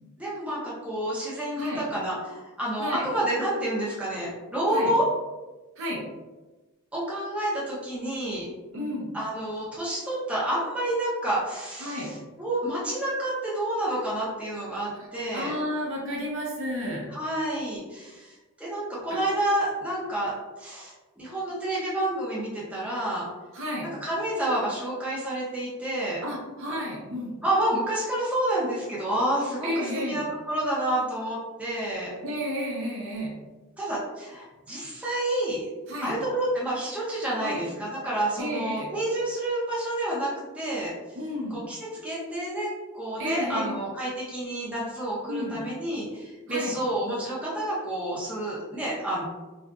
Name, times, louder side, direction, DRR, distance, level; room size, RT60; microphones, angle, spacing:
voice 1, 0.2-5.0 6.9-8.5 9.1-15.5 17.1-23.3 24.0-26.2 27.4-32.1 33.8-35.6 36.0-40.9 41.5-41.8 42.0-49.2, right 1 dB, 5° right, -7 dB, 0.6 m, -29 dB
voice 2, 8.7-9.1 11.8-12.1 14.9-17.1 23.5-23.9 26.2-27.3 29.6-30.2 32.2-33.3 35.9-36.1 37.4-37.6 38.4-38.9 41.1-41.6 43.2-43.7 45.2-45.6 46.5-46.7, equal, 60° right, -3 dB, 0.7 m, -32 dB
2.7 x 2.3 x 2.3 m, 1.2 s
head